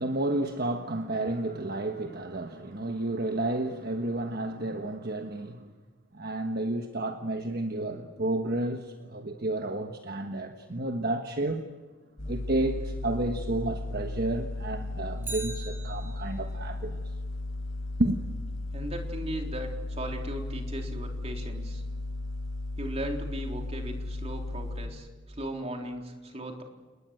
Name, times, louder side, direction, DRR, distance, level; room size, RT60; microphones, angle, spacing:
voice 1, 0.0-5.7 6.1-11.6 12.3-17.0 18.0-18.2, right 1 dB, 50° right, 1.4 m, -31 dB
sound 1, 12.2-24.9, left 2 dB, 80° left, 5.7 m, -35 dB
Bicycle, 15.2-16.6 24.9-25.0, right 2 dB, 10° right, 6.2 m, -41 dB
voice 2, 18.7-21.8 22.8-26.6, right 1 dB, 30° right, 3.8 m, -37 dB
30.0 x 19.5 x 7.8 m
head